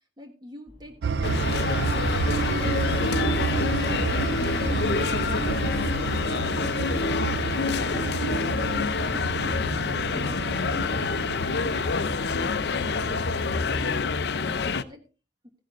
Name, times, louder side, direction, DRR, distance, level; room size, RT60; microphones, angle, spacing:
voice 1, 0.2-6.2 13.0-15.0 15.4-15.5, left 1 dB, 20° right, 4 dB, 1.5 m, -44 dB
sound 1, 0.7-12.1, left 1 dB, 40° right, 5.4 m, -51 dB
sound 2, 1.0-14.0, right 5 dB, 65° right, 0.4 m, -30 dB
sound 3, 1.2-14.8, left 4 dB, 60° left, 0.5 m, -27 dB
15.5 x 11.0 x 2.4 m, 0.32 s
head